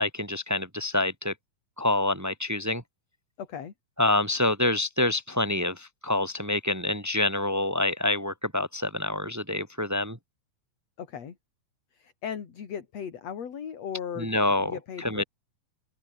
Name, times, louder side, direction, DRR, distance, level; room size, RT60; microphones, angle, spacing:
voice 1, 0.0-1.3 1.8-2.8 4.0-10.2 14.2-15.2, left 2 dB, 15° right, 0.6 m, -27 dB
voice 2, 3.4-3.7 11.0-11.4 11.9-14.3 14.6-15.2, left 8 dB, 50° left, 3.5 m, -37 dB
omnidirectional pair, 4.1 m